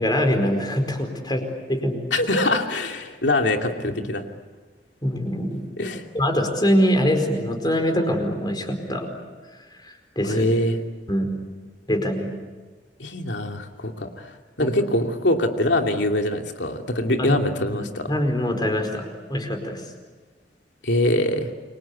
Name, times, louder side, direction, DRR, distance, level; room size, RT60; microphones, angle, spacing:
voice 1, 0.0-1.4 1.7-2.0 5.0-5.6 6.1-9.1 9.8-10.5 11.1-11.3 11.9-12.3 14.6-14.7 17.2-17.4 17.7-19.8, equal, 25° left, 5 dB, 4.7 m, -23 dB
voice 2, 2.1-4.2 5.8-6.0 10.2-10.8 13.0-18.1 20.8-21.5, left 1 dB, 80° left, 3 dB, 2.7 m, -23 dB
29.0 x 23.5 x 8.4 m, 1.3 s
head